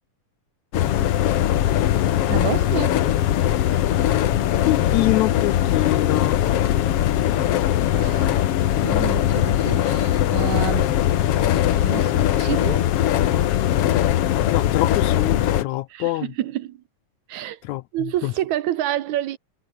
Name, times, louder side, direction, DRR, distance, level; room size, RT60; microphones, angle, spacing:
sound 1, 0.7-15.6, left 12 dB, 60° left, 1.8 m, -20 dB
voice 1, 2.3-3.1 7.9-8.5 8.8-10.9 11.4-12.9 15.9-16.8 17.3-17.6 17.9-19.4, right 13 dB, 75° right, 2.3 m, -29 dB
voice 2, 4.7-6.4 14.5-16.3 17.7-17.8 18.2-18.3, left 18 dB, 80° left, 1.8 m, -24 dB
omnidirectional pair, 3.5 m